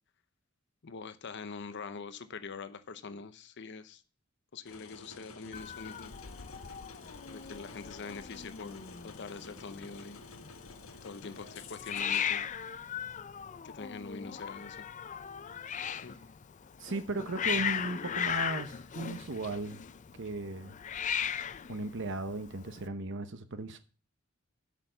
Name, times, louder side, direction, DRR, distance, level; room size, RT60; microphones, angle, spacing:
voice 1, 0.8-4.0 4.5-6.1 7.3-10.2 11.0-12.5 13.6-14.8 16.0-16.1, left 4 dB, 60° left, 0.8 m, -44 dB
sound 1, 4.6-12.2, left 4 dB, 85° left, 1.3 m, -51 dB
Hiss, 5.5-22.9, left 8 dB, 35° left, 0.4 m, -38 dB
voice 2, 16.8-19.8 20.2-20.8 21.7-23.8, right 3 dB, 60° right, 0.9 m, -36 dB
8.3 x 6.4 x 6.7 m
head